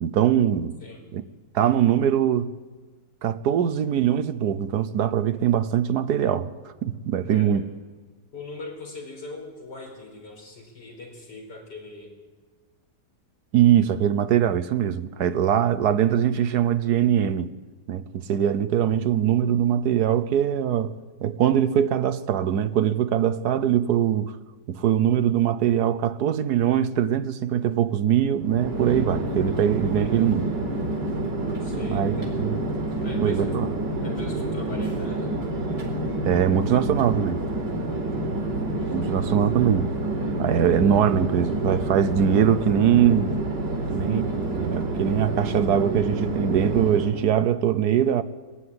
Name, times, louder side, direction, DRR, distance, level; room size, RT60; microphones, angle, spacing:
voice 1, 0.0-0.8 1.1-1.2 1.5-2.5 3.2-6.5 6.8-7.6 13.5-17.5 17.9-20.9 21.2-24.3 24.7-30.5 31.9-32.6 33.2-33.7 36.2-37.4 38.9-39.9 40.4-43.3 43.9-48.2, right 9 dB, 70° right, 1.3 m, -22 dB
voice 2, 0.8-1.1 7.3-7.6 8.3-12.1 29.9-30.1 31.6-32.3 33.0-33.7 34.0-35.4 38.0-38.6 43.8-44.1, left 3 dB, 80° left, 5.4 m, -41 dB
Chatter / Fixed-wing aircraft airplane, 28.4-47.3, right 2 dB, 90° right, 4.8 m, -28 dB
21.0 x 14.5 x 9.7 m
omnidirectional pair, 1.8 m